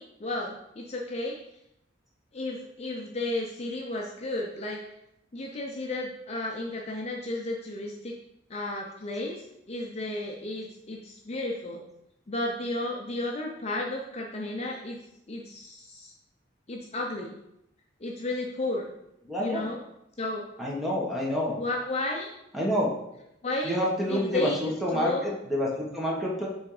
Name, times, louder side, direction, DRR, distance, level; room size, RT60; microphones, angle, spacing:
voice 1, 0.0-1.4 2.3-4.8 5.3-8.1 8.5-11.8 12.3-15.0 15.3-16.1 16.7-17.3 18.0-18.9 19.4-19.8 20.2-20.4 21.6-22.3 23.4-23.8 24.1-24.6 24.9-25.2, left 2 dB, 35° left, -1 dB, 0.6 m, -33 dB
voice 2, 19.3-19.7 20.6-21.5 22.5-22.9 23.6-26.5, equal, ahead, -4 dB, 1.2 m, -28 dB
6.3 x 3.5 x 4.8 m, 0.83 s
head